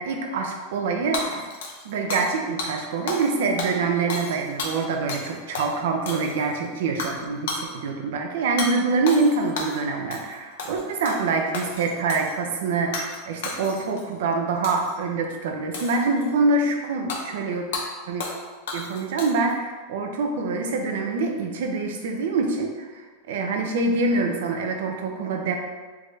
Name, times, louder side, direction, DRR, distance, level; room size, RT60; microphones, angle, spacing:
voice 1, 0.0-1.5 1.8-17.7 18.1-18.2 18.7-23.0 23.3-25.5, right 3 dB, 75° right, 3 dB, 0.5 m, -25 dB
Hammer / Shatter, 1.1-2.3 2.6-2.7 3.1-3.3 3.6-5.3 5.5-5.7 6.1-6.5 7.0-7.2 7.5-7.7 8.6-8.7 9.1-9.8 10.1-10.3 10.6-11.2 11.5-12.3 12.9-13.2 13.4-14.0 14.6-14.9 15.7-16.3 17.1-17.2 17.7-17.9 18.2-18.4 18.7-19.5, left 3 dB, 80° left, 0.6 m, -32 dB
3.5 x 2.6 x 3.3 m, 1.3 s
supercardioid pair, 125°, 0 cm